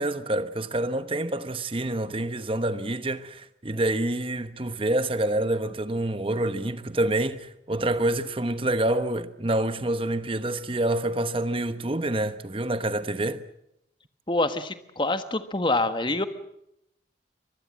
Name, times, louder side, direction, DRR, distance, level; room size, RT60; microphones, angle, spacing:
voice 1, 0.0-13.4, right 1 dB, 30° right, 1.0 m, -27 dB
voice 2, 14.3-16.3, left 2 dB, 25° left, 1.4 m, -26 dB
24.5 x 20.5 x 7.5 m
head